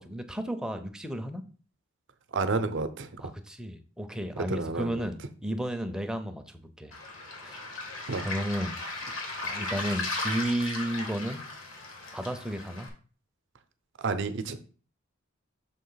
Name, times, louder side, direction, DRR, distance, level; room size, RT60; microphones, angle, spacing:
voice 1, 0.0-1.4 3.2-6.9 7.4-7.6 8.2-8.8 9.4-11.4 12.1-12.9, right 1 dB, 5° right, 7 dB, 0.6 m, -33 dB
voice 2, 2.3-3.2 4.5-5.1 8.1-8.3 14.0-14.6, right 3 dB, 60° right, 10 dB, 0.7 m, -30 dB
Waves surf, 6.9-12.9, left 2 dB, 80° left, 1.7 m, -36 dB
6.7 x 3.0 x 5.6 m, 0.40 s
head